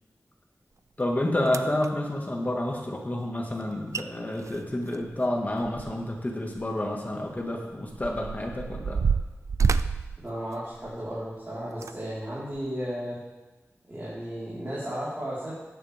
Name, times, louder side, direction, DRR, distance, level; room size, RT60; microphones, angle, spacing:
voice 1, 1.0-9.0, left 1 dB, 35° left, 0 dB, 2.1 m, -29 dB
sound 1, 1.0-1.1 1.5-1.9 3.6-3.7 3.9-4.0 4.4-6.2 6.5-6.7 7.4-11.1 11.7-11.9 12.5-12.7, right 5 dB, 85° right, 0.4 m, -29 dB
voice 2, 10.2-13.2 13.9-15.6, equal, 35° right, -11 dB, 4.8 m, -34 dB
15.5 x 9.9 x 3.7 m, 1.1 s
wide cardioid pair, 80°, 5 cm